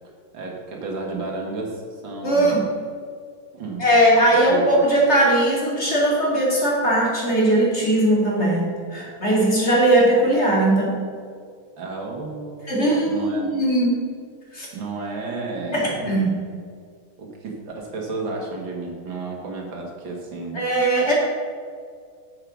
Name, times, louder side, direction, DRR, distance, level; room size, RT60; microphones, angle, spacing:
voice 1, 0.3-2.6 3.5-3.9 4.5-4.8 11.8-12.7 13.0-13.5 14.7-16.3 17.2-20.7, right 3 dB, 70° right, 0 dB, 2.4 m, -32 dB
voice 2, 2.2-2.7 3.8-11.0 12.7-14.0 14.5-14.7 15.7-16.3 20.5-21.1, right 1 dB, 30° left, -4 dB, 2.8 m, -19 dB
8.8 x 7.8 x 6.3 m, 2.1 s
omnidirectional pair, 2.2 m